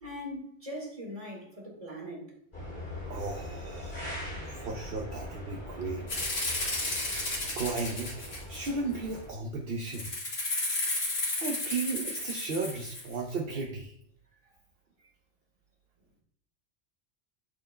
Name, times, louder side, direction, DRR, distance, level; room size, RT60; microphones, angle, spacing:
voice 1, 0.0-2.3 5.9-6.0 6.7-6.8 14.4-14.5, equal, 30° right, 1.8 m, -41 dB
sound 1, 2.5-9.3, left 1 dB, 50° left, 3.3 m, -41 dB
voice 2, 3.1-4.1 4.5-6.0 7.6-8.1 8.5-10.1 11.4-13.9, right 3 dB, 55° right, 0.9 m, -35 dB
Rattle (instrument), 6.1-8.9 9.9-13.1, left 2 dB, 85° left, 2.2 m, -33 dB
12.0 x 4.4 x 2.2 m
omnidirectional pair, 1.2 m